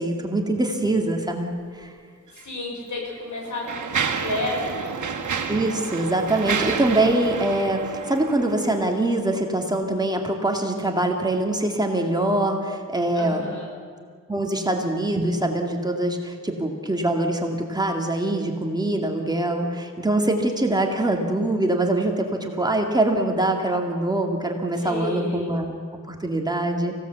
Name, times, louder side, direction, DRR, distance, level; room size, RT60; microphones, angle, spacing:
voice 1, 0.0-1.5 1.8-1.9 5.5-13.4 14.3-25.7 26.1-26.9, right 1 dB, 15° right, 2 dB, 2.2 m, -24 dB
voice 2, 2.3-4.9 13.1-13.7 24.7-25.5, left 2 dB, 80° left, 0 dB, 6.6 m, -31 dB
Mechanisms, 2.3-2.4 3.2-8.9, right 6 dB, 85° right, 1.9 m, -30 dB
25.5 x 16.5 x 8.2 m, 2.1 s
wide cardioid pair, 165°, 29 cm